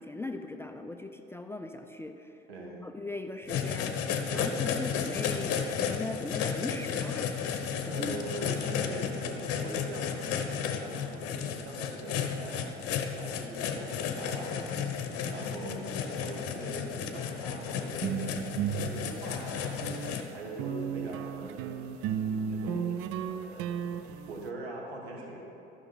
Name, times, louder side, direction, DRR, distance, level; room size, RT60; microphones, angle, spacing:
voice 1, 0.0-2.4 2.8-4.0 4.3-7.3 7.8-8.2 8.6-8.8, left 2 dB, 10° left, 5 dB, 0.4 m, -39 dB
voice 2, 2.5-2.8 4.3-4.6 7.8-12.7 13.2-14.7 15.1-18.3 18.7-19.8 20.3-21.8 22.2-23.9 24.3-25.4, right 2 dB, 80° right, -1 dB, 1.6 m, -42 dB
sound 1, 3.5-20.2, left 7 dB, 50° left, 0.9 m, -33 dB
sound 2, 17.9-20.2 20.6-24.5, right 8 dB, 50° right, 0.5 m, -34 dB
13.5 x 6.0 x 4.0 m, 3.0 s
figure-of-eight pair, 65°, 31 cm